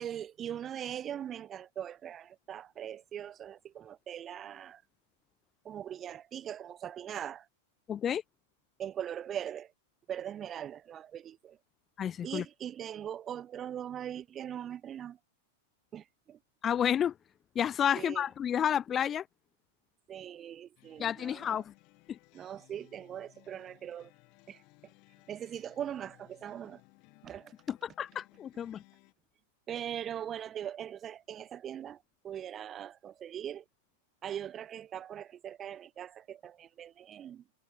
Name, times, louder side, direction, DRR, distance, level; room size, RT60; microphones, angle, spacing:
voice 1, 0.0-4.8 5.6-7.5 8.8-9.7 10.1-11.6 12.2-15.2 15.9-16.4 18.0-18.2 20.1-21.6 22.3-24.1 24.5-24.6 25.3-26.8 27.2-27.5 29.7-33.6 34.2-37.4, right 10 dB, 25° right, 0.6 m, -41 dB
voice 2, 7.9-8.2 12.0-12.4 16.6-17.1 17.6-19.2 21.0-21.7 22.1-22.2 27.7-28.8, left 9 dB, 25° left, 0.5 m, -30 dB
sound 1, 20.8-29.1, left 28 dB, 45° left, 3.2 m, -62 dB
hypercardioid pair, 125°, 0 cm